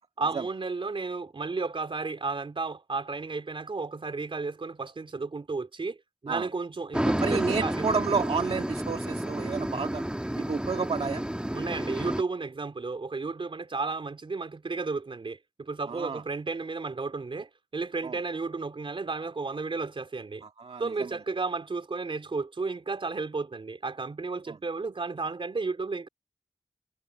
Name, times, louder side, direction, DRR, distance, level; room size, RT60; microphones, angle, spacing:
voice 1, 0.2-6.0 6.2-7.9 11.5-20.4 20.8-26.1, right 4 dB, 60° right, 3.2 m, -33 dB
sound 1, 6.9-12.2, right 1 dB, 10° right, 2.1 m, -30 dB
voice 2, 7.2-10.0 10.3-11.2 15.8-16.2 18.0-18.2 20.4-21.2 24.5-24.6, right 5 dB, 80° right, 1.8 m, -31 dB
wide cardioid pair, 60°, 10 cm